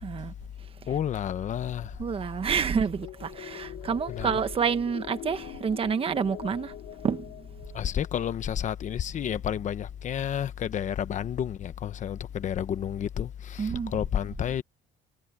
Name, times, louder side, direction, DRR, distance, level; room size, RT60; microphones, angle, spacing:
voice 1, 0.0-0.3 0.8-1.0 2.0-6.7 7.0-7.5 13.6-14.0, right 6 dB, 30° right, 1.3 m, -29 dB
voice 2, 0.9-1.9 4.2-4.3 7.7-14.6, left 9 dB, 40° left, 1.0 m, -30 dB
sound 1, 3.0-8.2, left 14 dB, 70° left, 4.4 m, -43 dB
cardioid pair, 160°, 20 cm